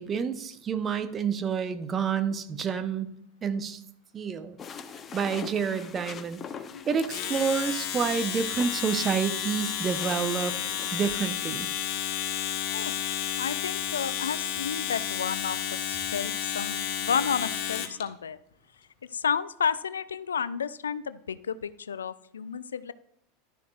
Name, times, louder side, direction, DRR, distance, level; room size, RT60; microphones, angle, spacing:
voice 1, 0.0-3.1 3.4-3.8 4.1-4.6 5.1-6.4 6.9-10.5 10.9-11.7, right 6 dB, 25° right, 10 dB, 0.9 m, -29 dB
sound 1, 4.6-11.0, left 6 dB, 30° left, 0.7 m, -44 dB
Domestic sounds home sounds, 7.0-18.0, left 10 dB, 45° left, 1.3 m, -31 dB
voice 2, 13.4-18.4 19.0-22.9, left 7 dB, 75° left, 17 dB, 0.4 m, -31 dB
12.0 x 10.5 x 2.5 m, 0.75 s
figure-of-eight pair, 80°, 0 cm